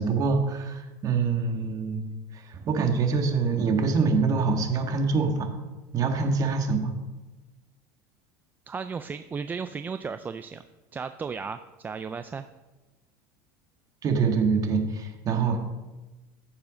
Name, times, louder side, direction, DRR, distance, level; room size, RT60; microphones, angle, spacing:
voice 1, 0.0-2.0 2.3-5.5 5.9-6.9 14.0-15.6, right 4 dB, 35° right, 4 dB, 1.9 m, -25 dB
voice 2, 8.7-10.6 10.9-12.4, right 5 dB, 15° right, 10 dB, 0.4 m, -35 dB
15.0 x 7.2 x 5.1 m, 1.1 s
supercardioid pair, 140°, 11 cm